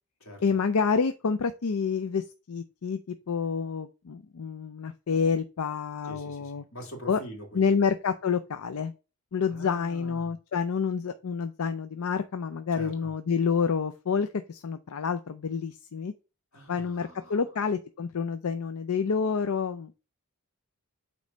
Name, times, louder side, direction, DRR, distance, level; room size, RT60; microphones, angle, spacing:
voice 1, 0.4-6.6 7.1-7.2 7.5-8.9 9.3-16.1 16.7-19.9, left 5 dB, 85° left, 0.5 m, -28 dB
voice 2, 6.0-7.8 9.5-10.3 12.7-13.1 16.5-17.5, equal, 65° left, 2.4 m, -44 dB
8.3 x 3.1 x 5.3 m
head